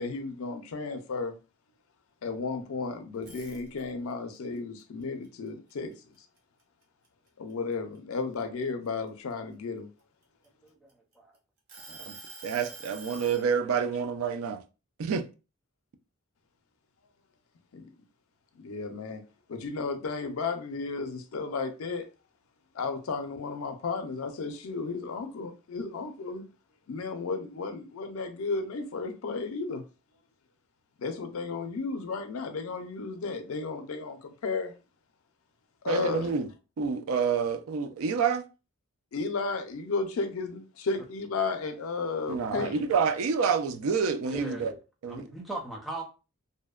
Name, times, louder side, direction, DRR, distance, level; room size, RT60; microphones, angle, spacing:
voice 1, 0.0-1.3 2.2-5.9 7.4-9.9 17.7-17.9 18.6-19.2 19.5-22.1 22.7-26.4 26.9-29.8 31.0-34.7 35.8-36.3 39.1-42.7, left 4 dB, 80° left, 0.4 m, -33 dB
sound 1, 3.1-4.1 4.6-6.4 6.8-7.1 7.5-9.3 10.0-11.1 11.7-13.5, right 3 dB, 50° right, 0.7 m, -47 dB
voice 2, 10.6-11.4 42.5-42.7 44.3-44.8 45.1-46.0, right 2 dB, ahead, 0.5 m, -39 dB
voice 3, 12.4-14.6 15.0-15.3 35.9-36.5 36.8-38.4 42.3-44.7 45.0-45.2, right 6 dB, 80° right, 0.4 m, -28 dB
2.6 x 2.1 x 2.3 m
head